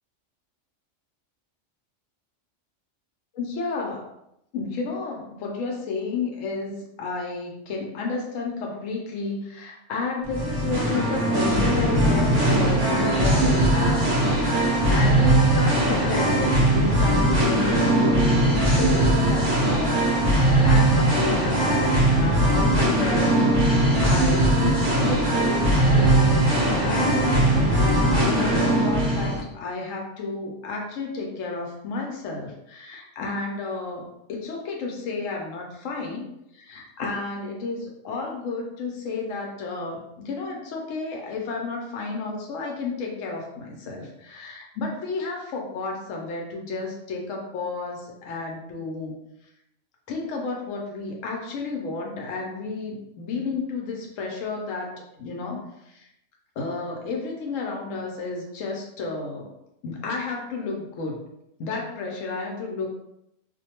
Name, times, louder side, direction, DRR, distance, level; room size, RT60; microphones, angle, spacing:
voice 1, 3.3-4.0 4.5-20.0 20.6-49.1 50.1-56.1 56.6-59.5 59.8-61.2 61.6-62.9, left 3 dB, 80° left, 0 dB, 0.9 m, -32 dB
Singing, 10.2-29.4, right 1 dB, 70° right, 0.9 m, -20 dB
2.5 x 2.1 x 2.8 m, 0.82 s
omnidirectional pair, 1.3 m